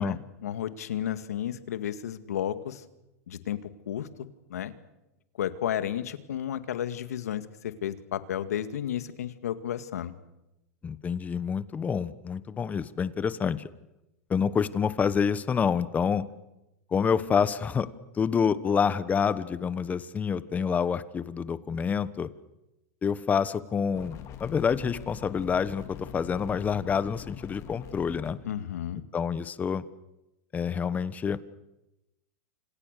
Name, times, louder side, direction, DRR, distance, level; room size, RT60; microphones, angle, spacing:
voice 1, 0.0-2.8 3.3-3.6 3.9-4.7 5.4-10.1 28.4-29.0, left 10 dB, 85° left, 11 dB, 2.1 m, -32 dB
voice 2, 10.8-13.7 14.3-16.3 16.9-17.9 18.1-22.3 23.0-28.4 29.1-29.8 30.5-31.4, left 6 dB, 20° left, 15 dB, 1.2 m, -27 dB
sound 1, 23.9-28.3, left 9 dB, 35° left, 3.7 m, -43 dB
29.0 x 27.5 x 6.8 m, 0.94 s
supercardioid pair, 130°, 8 cm